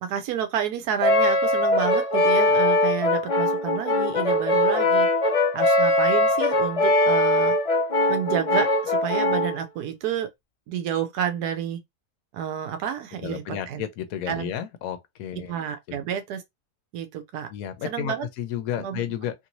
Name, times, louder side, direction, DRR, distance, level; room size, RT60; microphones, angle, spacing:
voice 1, 0.0-5.1 5.5-7.5 8.1-10.3 10.7-11.8 12.3-13.8 14.3-14.5 15.5-16.4 16.9-17.5 17.8-18.3 18.8-19.0, right 9 dB, 90° right, 1.2 m, -30 dB
Brass instrument, 1.0-9.6, left 1 dB, 45° left, 0.4 m, -21 dB
voice 2, 13.2-15.6 17.5-19.3, left 10 dB, 70° left, 1.0 m, -32 dB
3.0 x 2.6 x 2.9 m
omnidirectional pair, 1.6 m